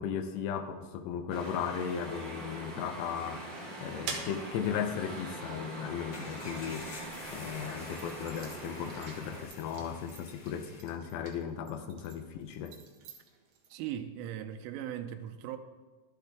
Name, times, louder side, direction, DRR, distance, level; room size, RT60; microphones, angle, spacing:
voice 1, 0.0-12.8, left 8 dB, 80° left, 2.5 m, -36 dB
sound 1, 1.3-9.4, right 1 dB, 35° right, 2.2 m, -43 dB
sound 2, 4.0-6.9 7.5-13.8, right 5 dB, 65° right, 3.0 m, -47 dB
sound 3, 6.1-10.8, left 3 dB, 45° left, 2.3 m, -49 dB
voice 2, 13.7-15.6, right 10 dB, 90° right, 3.1 m, -38 dB
12.5 x 12.0 x 3.5 m
omnidirectional pair, 5.4 m